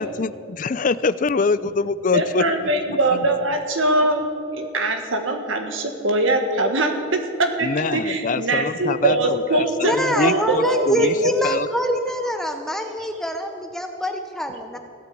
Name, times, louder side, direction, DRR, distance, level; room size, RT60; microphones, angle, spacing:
voice 1, 0.0-2.5 7.6-11.1 11.4-11.7, left 4 dB, 40° left, 15 dB, 0.4 m, -24 dB
voice 2, 2.1-4.2 4.5-9.9 10.2-11.3, right 2 dB, 75° right, 5 dB, 1.7 m, -22 dB
voice 3, 9.8-14.8, equal, ahead, 5 dB, 0.8 m, -25 dB
16.5 x 9.2 x 8.5 m, 2.6 s
head